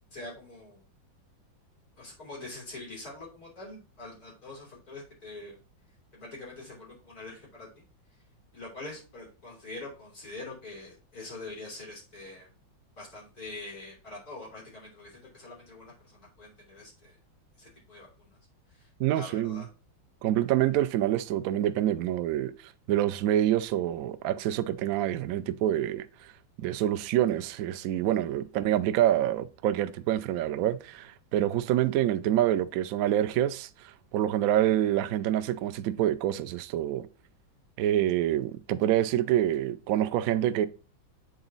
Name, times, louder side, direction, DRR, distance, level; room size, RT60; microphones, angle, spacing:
voice 1, 0.1-0.8 2.0-5.6 6.1-7.8 8.5-12.5 13.0-17.2 17.6-18.3 18.7-19.7, left 2 dB, 50° left, 3.5 m, -44 dB
voice 2, 19.0-19.6 20.2-26.3 26.6-37.1 37.8-40.7, right 12 dB, 85° right, 0.7 m, -27 dB
8.1 x 3.9 x 3.9 m
omnidirectional pair, 2.0 m